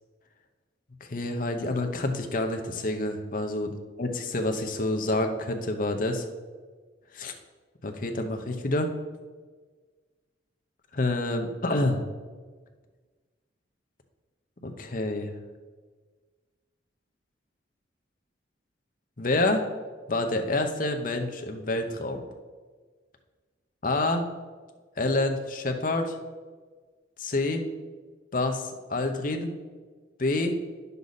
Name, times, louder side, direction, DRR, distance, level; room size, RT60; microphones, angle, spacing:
voice 1, 1.1-3.7 4.0-6.3 7.1-7.3 7.8-8.9 10.9-12.0 14.6-15.3 19.2-19.6 20.1-22.2 23.8-24.2 25.0-26.2 27.2-27.7 28.3-29.5 30.2-30.5, left 2 dB, 45° left, 5 dB, 0.8 m, -27 dB
9.6 x 6.8 x 4.0 m, 1.5 s
head